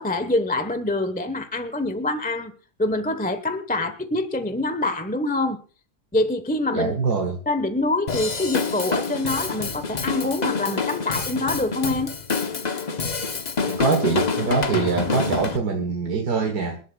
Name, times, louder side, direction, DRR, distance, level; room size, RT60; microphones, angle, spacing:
voice 1, 0.0-2.5 2.8-5.6 6.1-6.9 7.5-12.2, left 2 dB, 5° left, 0.8 m, -25 dB
voice 2, 6.7-7.4 13.7-16.8, right 5 dB, 60° right, 1.9 m, -24 dB
Drum kit / Drum, 8.1-15.6, left 5 dB, 35° left, 0.7 m, -27 dB
27.5 x 11.5 x 2.3 m
omnidirectional pair, 1.9 m